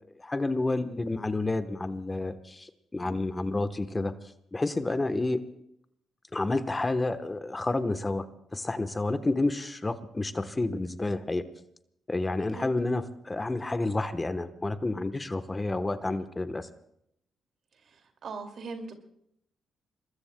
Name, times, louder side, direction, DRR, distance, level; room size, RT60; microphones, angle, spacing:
voice 1, 0.2-4.1 4.5-5.4 6.3-8.2 8.5-11.4 12.1-16.7, left 2 dB, 25° left, 10 dB, 1.1 m, -30 dB
voice 2, 17.9-18.9, right 4 dB, 60° right, 5 dB, 2.4 m, -40 dB
26.5 x 20.5 x 2.3 m, 0.75 s
supercardioid pair, 55°, 0 cm